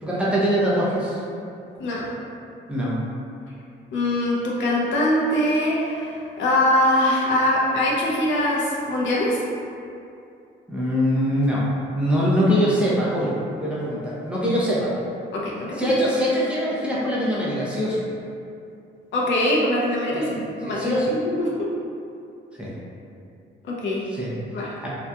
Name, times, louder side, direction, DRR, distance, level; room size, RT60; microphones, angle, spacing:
voice 1, 0.0-1.2 2.7-3.0 10.7-11.6 11.9-13.3 13.6-14.9 15.7-18.0 20.1-20.2 20.7-21.1 22.6-22.7 24.1-24.3 24.8-24.9, equal, 5° right, -8 dB, 0.6 m, -22 dB
voice 2, 3.9-9.4 15.3-15.9 19.1-21.7 23.6-24.1 24.5-24.7, left 1 dB, 70° left, -4 dB, 0.6 m, -23 dB
2.8 x 2.4 x 2.2 m, 2.6 s
cardioid pair, 90°, 20 cm